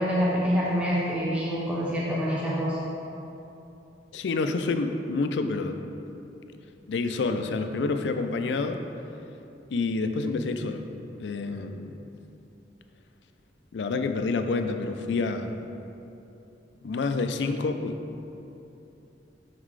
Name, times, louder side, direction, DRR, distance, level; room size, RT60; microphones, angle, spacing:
voice 1, 0.0-2.8, equal, 5° right, -7 dB, 0.7 m, -26 dB
voice 2, 4.1-5.8 6.9-8.8 9.7-10.8 11.2-12.0 13.7-15.6 16.8-18.0, left 3 dB, 80° left, 7 dB, 0.4 m, -28 dB
6.3 x 4.0 x 4.6 m, 2.9 s
head